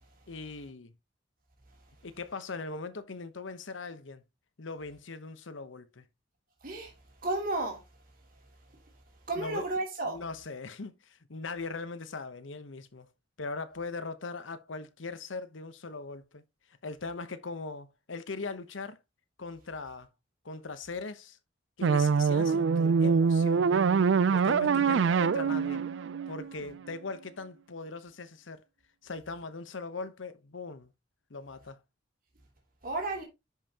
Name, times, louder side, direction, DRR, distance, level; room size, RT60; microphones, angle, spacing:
voice 1, 0.3-0.9 2.0-4.2 4.6-6.0 9.4-9.7 10.1-13.1 13.4-16.4 16.8-19.0 19.4-20.1 20.4-21.4 21.8-23.9 24.3-25.8 26.3-28.6 29.0-30.9 31.3-31.8, left 3 dB, 90° left, 0.9 m, -40 dB
voice 2, 7.2-7.8 9.3-10.2 32.8-33.2, right 2 dB, 50° right, 2.8 m, -32 dB
sound 1, 21.8-26.9, right 5 dB, 75° right, 0.4 m, -25 dB
10.5 x 5.6 x 2.9 m
head